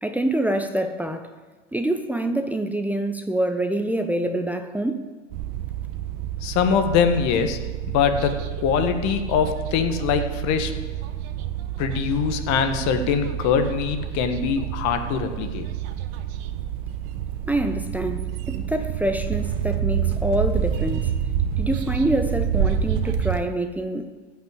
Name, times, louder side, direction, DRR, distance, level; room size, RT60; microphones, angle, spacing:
voice 1, 0.0-1.3 1.7-5.0 17.5-21.2 21.6-24.1, right 1 dB, 5° right, 6 dB, 0.8 m, -26 dB
sound 1, 5.3-23.4, right 9 dB, 55° right, 1.2 m, -28 dB
voice 2, 6.4-7.6 7.9-10.7 11.8-15.7, left 7 dB, 45° left, 7 dB, 1.6 m, -23 dB
15.0 x 6.0 x 8.2 m, 1.3 s
hypercardioid pair, 95°, 37 cm